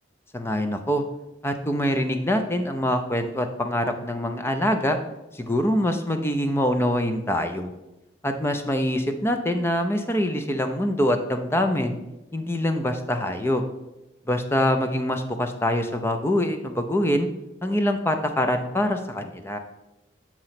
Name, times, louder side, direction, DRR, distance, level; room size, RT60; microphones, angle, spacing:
voice 1, 0.3-1.0 1.4-5.0 5.3-7.7 8.2-12.0 12.3-13.6 14.3-17.3 17.6-19.6, left 1 dB, 10° left, 6 dB, 0.5 m, -24 dB
7.6 x 3.0 x 5.7 m, 0.98 s
head